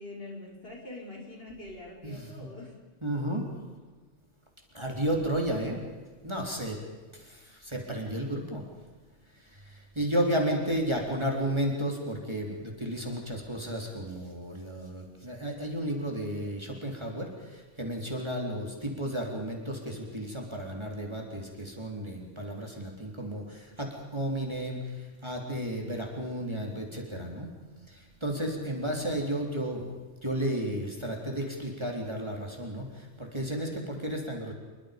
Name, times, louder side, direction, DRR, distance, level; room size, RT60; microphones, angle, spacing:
voice 1, 0.0-2.8, left 2 dB, 50° left, -2 dB, 5.7 m, -44 dB
voice 2, 2.0-2.5 3.0-3.5 4.7-5.8 6.2-6.8 7.1-8.6 9.7-24.8 25.2-27.5 27.9-29.9 30.2-34.5, right 1 dB, 20° right, 0 dB, 3.6 m, -33 dB
27.5 x 23.5 x 5.3 m, 1.4 s
omnidirectional pair, 1.3 m